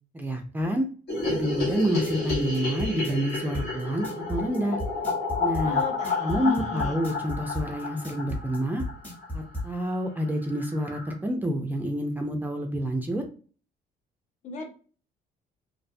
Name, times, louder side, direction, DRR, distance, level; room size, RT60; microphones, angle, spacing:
voice 1, 0.1-0.9 1.3-4.8 5.4-5.8 6.2-8.8 9.3-13.2, equal, 10° right, 3 dB, 0.3 m, -28 dB
sound 1, 1.1-9.3 9.6-9.7 9.9-10.0 10.3-10.4 10.6-11.1, left 3 dB, 80° left, 1.1 m, -31 dB
sound 2, 1.8-9.7, left 1 dB, 10° left, 0.8 m, -34 dB
voice 2, 5.6-7.0 14.4-14.7, left 3 dB, 45° left, 3 dB, 0.6 m, -36 dB
2.4 x 2.1 x 2.5 m, 0.39 s
cardioid pair, 125°, 16 cm